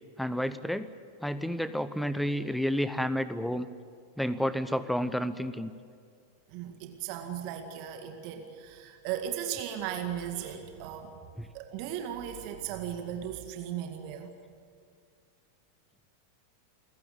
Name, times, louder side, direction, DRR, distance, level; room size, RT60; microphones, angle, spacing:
voice 1, 0.2-0.9 1.2-3.7 4.2-5.7 11.4-11.5, equal, ahead, 14 dB, 0.8 m, -30 dB
voice 2, 6.5-11.2 11.5-14.3, right 10 dB, 45° right, 6 dB, 2.0 m, -37 dB
29.0 x 15.5 x 8.7 m, 2.2 s
figure-of-eight pair, 90°, 0 cm